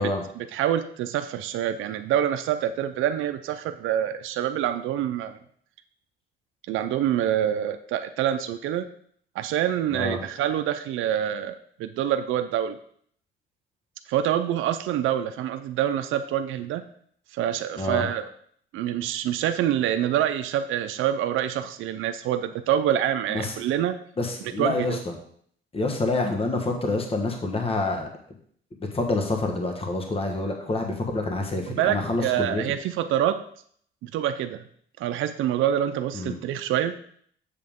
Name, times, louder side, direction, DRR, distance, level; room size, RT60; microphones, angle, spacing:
voice 1, 0.0-5.4 6.7-8.8 9.4-12.8 14.1-16.8 17.3-18.3 18.7-24.0 24.6-25.0 31.7-33.4 34.0-34.6 35.0-37.0, right 10 dB, 85° right, 8 dB, 0.5 m, -26 dB
voice 2, 9.9-10.2 17.8-18.1 23.3-23.5 24.2-25.1 25.7-28.1 28.9-32.6 36.1-36.4, left 2 dB, 30° left, 3 dB, 1.2 m, -27 dB
7.4 x 6.6 x 3.6 m, 0.62 s
cardioid pair, 90°, 20 cm